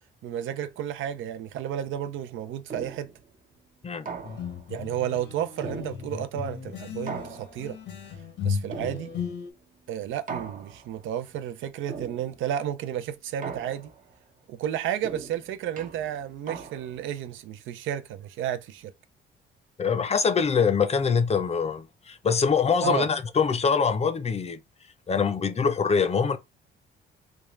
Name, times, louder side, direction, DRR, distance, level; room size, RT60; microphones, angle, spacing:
voice 1, 0.2-3.1 4.7-7.8 8.4-9.1 9.9-13.9 14.5-18.9 22.8-23.1, right 10 dB, 80° right, 0.5 m, -32 dB
sound 1, 2.7-3.2 4.1-4.7 5.6-6.4 7.1-7.9 8.7-9.4 10.3-11.0 11.9-12.5 13.4-14.1 15.0-17.1, right 5 dB, 45° right, 0.6 m, -40 dB
sound 2, 4.2-9.5, left 6 dB, 65° left, 0.8 m, -35 dB
voice 2, 19.8-24.6 25.1-26.4, left 6 dB, 30° left, 0.6 m, -24 dB
3.5 x 2.2 x 3.1 m
cardioid pair, 90°, 20 cm